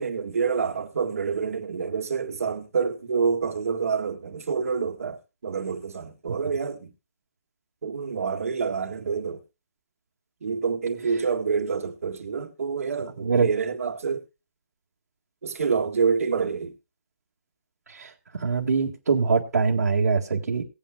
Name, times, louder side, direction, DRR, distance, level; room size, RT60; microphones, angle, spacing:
voice 1, 0.0-6.9 7.8-9.4 10.4-14.2 15.4-16.7, right 5 dB, 60° right, 1.7 m, -27 dB
voice 2, 17.9-20.6, right 5 dB, 85° right, 1.8 m, -23 dB
19.5 x 8.8 x 2.3 m
hypercardioid pair, 175°, 9 cm